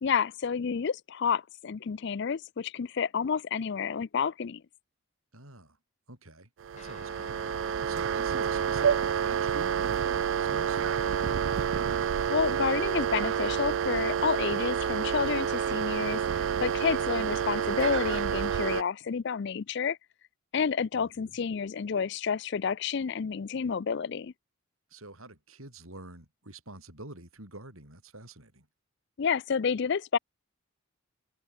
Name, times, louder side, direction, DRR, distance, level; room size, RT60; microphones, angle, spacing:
voice 1, 0.0-4.6 12.3-20.0 20.5-24.3 29.2-30.2, left 6 dB, 55° left, 0.4 m, -30 dB
voice 2, 5.3-5.8 6.1-11.4 20.9-21.4 24.9-28.7, right 2 dB, 75° right, 7.9 m, -47 dB
sound 1, 6.6-18.8, right 7 dB, 60° right, 0.3 m, -29 dB
Guitar, 6.7-16.6, left 1 dB, 30° left, 6.5 m, -55 dB
head